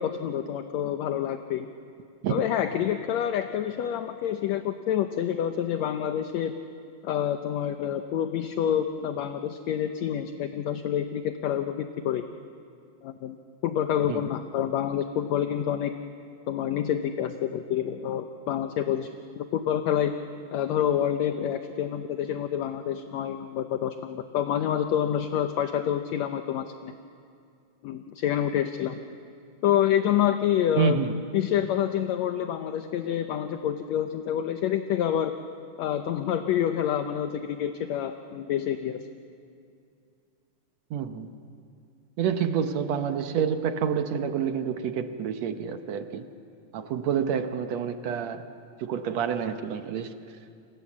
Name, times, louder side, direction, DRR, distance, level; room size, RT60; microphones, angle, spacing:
voice 1, 0.0-1.7 2.3-6.6 7.0-12.2 13.0-13.4 13.6-15.9 16.5-19.1 19.4-20.1 20.5-26.9 27.8-29.0 29.6-31.0 31.3-35.3 35.8-39.0, left 10 dB, 70° left, 7 dB, 2.0 m, -27 dB
voice 2, 30.8-31.1 40.9-41.3 42.2-46.3 46.7-48.4 48.8-50.2, right 7 dB, 70° right, 8 dB, 2.1 m, -28 dB
27.5 x 27.5 x 7.4 m, 2.4 s
omnidirectional pair, 3.5 m